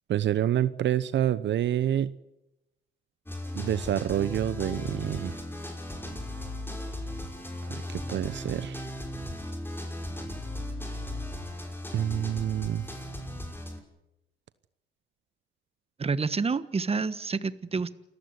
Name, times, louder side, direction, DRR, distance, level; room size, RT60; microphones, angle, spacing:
voice 1, 0.1-2.2 3.5-5.4 7.7-8.8 11.9-12.9, right 11 dB, 65° right, 15 dB, 0.9 m, -28 dB
sound 1, 3.3-13.8, left 1 dB, 10° left, 5.9 m, -37 dB
voice 2, 16.0-17.9, right 4 dB, 30° right, 14 dB, 1.4 m, -28 dB
29.0 x 14.5 x 9.8 m, 0.92 s
cardioid pair, 90°, 20 cm